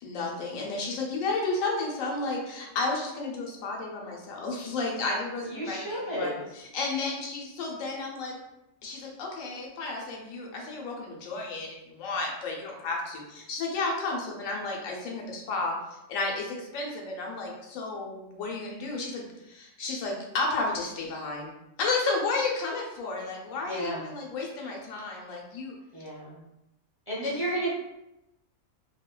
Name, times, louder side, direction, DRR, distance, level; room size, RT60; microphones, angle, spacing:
voice 1, 0.0-6.3 6.7-8.3 8.8-15.8 16.1-21.5 21.8-25.7, left 3 dB, 90° left, -1 dB, 1.0 m, -32 dB
voice 2, 5.5-6.4 23.7-24.0 25.9-26.4 27.1-27.7, right 1 dB, 15° right, -8 dB, 0.5 m, -32 dB
2.6 x 2.1 x 2.2 m, 0.89 s
omnidirectional pair, 1.4 m